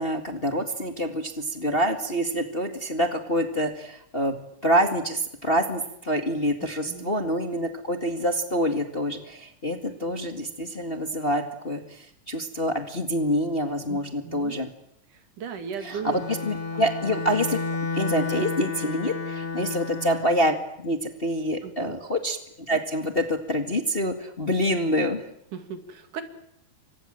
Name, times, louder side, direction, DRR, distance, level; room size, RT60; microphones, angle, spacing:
voice 1, 0.0-4.3 4.6-14.7 15.8-17.6 17.9-25.2, equal, 25° left, 5 dB, 1.6 m, -26 dB
voice 2, 6.6-7.2 9.9-10.2 13.9-14.6 15.1-16.2 16.7-16.8 21.6-22.0 25.5-26.2, right 7 dB, 80° right, 8 dB, 3.8 m, -37 dB
Bowed string instrument, 16.0-20.5, left 4 dB, 50° left, 4.9 m, -31 dB
30.0 x 25.0 x 7.6 m, 0.74 s
omnidirectional pair, 3.6 m